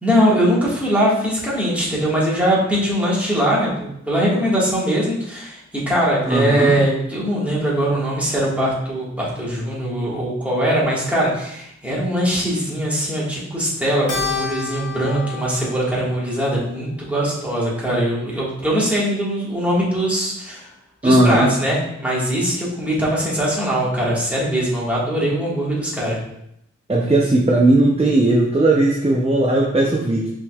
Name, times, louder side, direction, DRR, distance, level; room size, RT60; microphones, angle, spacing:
voice 1, 0.0-20.7 21.0-26.2, equal, 5° right, -6 dB, 1.6 m, -21 dB
voice 2, 6.3-6.8 21.0-21.5 26.9-30.3, right 2 dB, 20° right, -2 dB, 0.5 m, -17 dB
Keyboard (musical), 14.1-18.7, left 5 dB, 90° left, 0.8 m, -32 dB
5.6 x 3.6 x 2.3 m, 0.79 s
wide cardioid pair, 50°, 31 cm